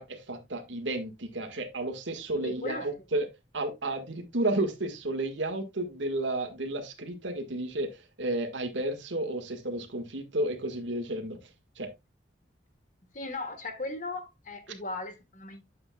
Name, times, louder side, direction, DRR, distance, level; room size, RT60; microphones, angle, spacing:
voice 1, 0.0-3.3 3.5-11.4 11.8-11.9, right 1 dB, 85° right, 1.8 m, -32 dB
voice 2, 2.3-2.9 4.4-4.5 13.1-15.6, left 2 dB, 45° left, 1.5 m, -37 dB
9.8 x 7.6 x 2.3 m
head